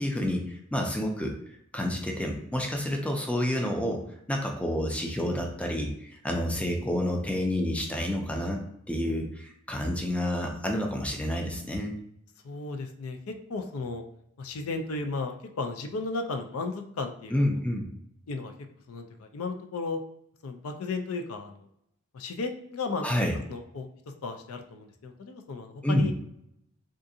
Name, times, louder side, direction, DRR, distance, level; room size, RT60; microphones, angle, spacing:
voice 1, 0.0-1.4 1.7-4.0 4.3-8.6 8.9-11.9 17.3-17.9 23.0-23.3 25.8-26.1, left 1 dB, 5° left, 2 dB, 0.4 m, -29 dB
voice 2, 12.4-14.0 14.4-17.5 18.3-18.5 18.9-20.0 20.4-21.7 22.1-23.1 23.5-23.9 24.2-26.1, left 3 dB, 80° left, 6 dB, 0.4 m, -34 dB
3.7 x 2.4 x 2.6 m, 0.74 s
head